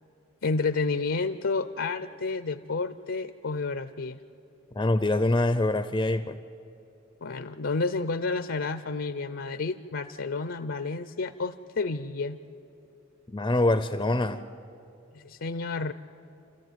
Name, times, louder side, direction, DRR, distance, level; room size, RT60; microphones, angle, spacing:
voice 1, 0.4-4.2 7.2-12.4 15.1-15.9, left 3 dB, 65° left, 11 dB, 0.6 m, -30 dB
voice 2, 4.7-6.4 13.3-14.4, left 2 dB, 20° left, 11 dB, 0.5 m, -25 dB
27.0 x 14.5 x 9.2 m, 2.9 s
head